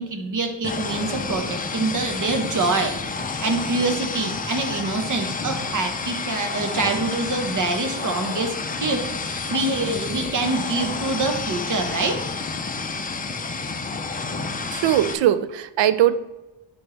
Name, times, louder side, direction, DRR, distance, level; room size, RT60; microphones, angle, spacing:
voice 1, 0.0-3.0 3.4-8.5 8.8-12.2, right 3 dB, 40° right, 5 dB, 1.3 m, -25 dB
sound 1, 0.6-15.1, left 4 dB, 20° left, 0.6 m, -30 dB
voice 2, 14.7-16.2, right 11 dB, 70° right, 14 dB, 0.7 m, -20 dB
11.0 x 4.5 x 3.4 m, 1.0 s
cardioid pair, 105°, 46 cm